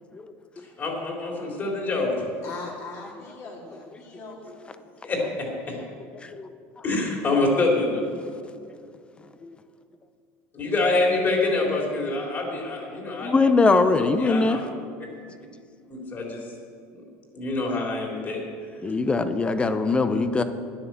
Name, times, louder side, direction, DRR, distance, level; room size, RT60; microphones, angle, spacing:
voice 1, 0.6-2.3 5.0-5.8 6.8-8.1 10.5-13.3 13.8-14.6 15.9-16.5 16.9-17.0 17.3-18.4, left 2 dB, 35° left, -1 dB, 3.5 m, -26 dB
voice 2, 2.4-4.5, left 3 dB, 55° left, -3 dB, 3.4 m, -39 dB
voice 3, 6.2-6.5 9.4-9.6 13.2-14.6 18.8-20.4, left 3 dB, 20° left, 10 dB, 0.8 m, -22 dB
10.5 x 10.0 x 7.4 m, 2.3 s
supercardioid pair, 125°, 6 cm